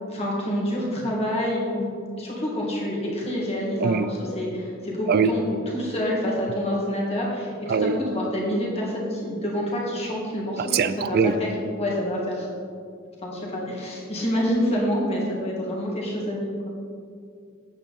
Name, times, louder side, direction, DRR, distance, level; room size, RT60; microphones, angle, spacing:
voice 1, 0.1-1.8 2.2-11.5 11.8-12.5 13.2-16.7, equal, 30° left, -4 dB, 2.2 m, -27 dB
voice 2, 10.7-11.4, right 6 dB, 50° right, 13 dB, 0.4 m, -21 dB
8.8 x 8.1 x 4.2 m, 2.3 s
head